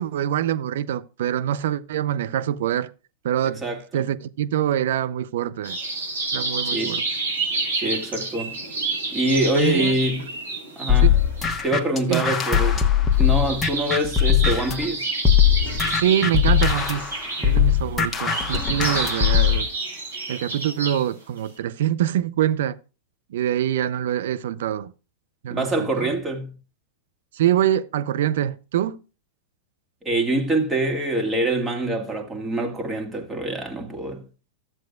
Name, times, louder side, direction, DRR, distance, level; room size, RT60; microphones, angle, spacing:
voice 1, 0.0-2.9 3.2-3.6 3.9-5.8 6.3-7.0 9.6-10.0 11.0-11.2 12.1-12.3 16.0-19.7 20.3-22.8 23.3-24.9 25.4-26.1 27.3-29.0, right 11 dB, 65° right, 0.5 m, -24 dB
voice 2, 3.6-4.1 6.7-7.0 7.8-8.5 9.1-10.2 10.8-11.1 11.6-12.8 13.2-15.1 25.5-26.5 30.0-34.2, right 1 dB, 15° right, 2.2 m, -25 dB
sound 1, 5.6-21.1 21.4-21.6, right 3 dB, 85° right, 4.4 m, -30 dB
sound 2, 10.9-14.9 15.2-19.6, left 9 dB, 20° left, 1.2 m, -20 dB
13.5 x 7.6 x 2.4 m
figure-of-eight pair, 100°, 0 cm